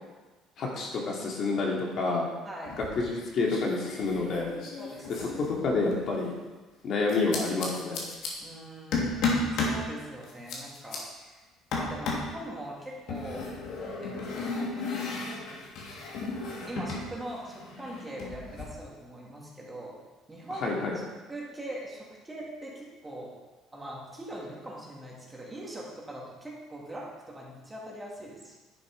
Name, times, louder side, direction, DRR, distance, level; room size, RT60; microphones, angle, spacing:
voice 1, 0.6-2.2 2.8-4.5 5.1-6.3 6.8-8.0 20.6-21.0, left 3 dB, 50° left, -2 dB, 2.4 m, -29 dB
voice 2, 2.4-2.8 4.8-5.5 8.4-11.3 11.7-13.5 13.8-15.1 16.7-20.0 20.3-20.8 21.3-23.3 23.7-28.6, right 1 dB, 10° right, -4 dB, 2.7 m, -42 dB
sound 1, 2.7-3.2 3.5-6.1 7.1-8.3 8.9-9.8 10.2-11.0 11.7-12.3 13.1-17.1 17.3-18.6, left 3 dB, 65° left, 2.7 m, -34 dB
11.0 x 8.0 x 5.0 m, 1.2 s
cardioid pair, 130°, 0 cm